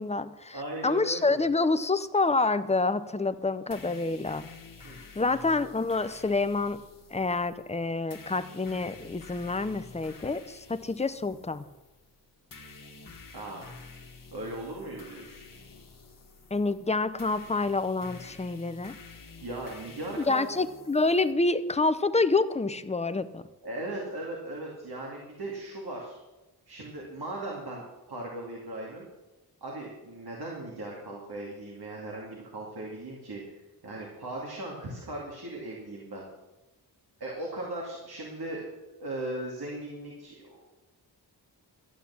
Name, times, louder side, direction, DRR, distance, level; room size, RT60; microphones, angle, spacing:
voice 1, 0.0-0.6 0.8-4.4 5.2-6.8 7.1-11.7 16.5-18.9 20.3-23.4, left 3 dB, 15° left, 12 dB, 0.6 m, -27 dB
voice 2, 0.5-1.4 4.8-5.0 13.3-13.7 14.3-15.4 19.4-20.5 23.6-26.2 26.7-29.1 29.6-33.4 33.8-36.3 37.2-38.6 39.0-40.6, right 1 dB, 65° right, -2 dB, 2.5 m, -38 dB
sound 1, 3.7-21.3, left 4 dB, 55° left, 1.6 m, -50 dB
12.5 x 8.2 x 7.1 m, 1.1 s
wide cardioid pair, 120°, 40 cm